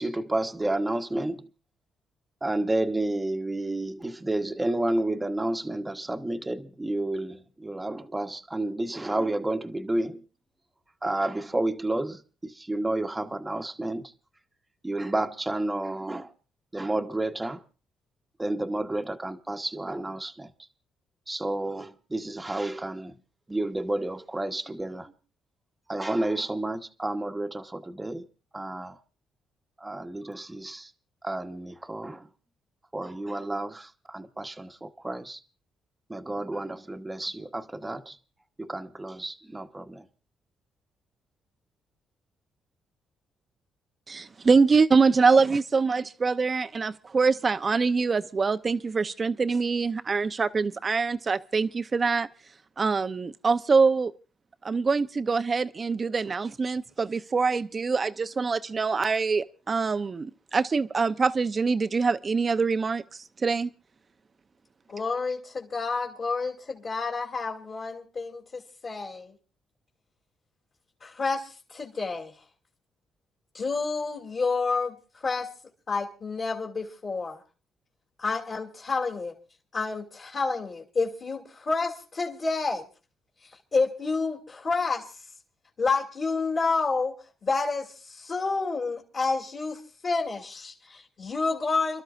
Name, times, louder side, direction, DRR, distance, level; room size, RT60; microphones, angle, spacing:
voice 1, 0.0-1.5 2.4-10.2 11.0-14.1 14.8-16.3 16.7-17.6 18.4-20.5 21.3-23.1 23.5-25.1 25.9-28.2 28.5-29.0 29.8-30.9 31.2-32.3 32.9-35.4 36.1-38.2 38.6-40.0, right 1 dB, 15° right, 1.1 m, -31 dB
voice 2, 44.1-52.3 52.8-54.1 54.6-63.7, right 4 dB, 35° right, 0.7 m, -24 dB
voice 3, 64.9-69.3 71.0-72.3 73.5-74.9 75.2-75.5 75.9-77.4 78.2-79.3 79.7-82.8 83.7-85.0 85.8-87.1 87.4-92.0, left 4 dB, 45° left, 2.7 m, -29 dB
30.0 x 12.5 x 2.5 m
cardioid pair, 90°, 0 cm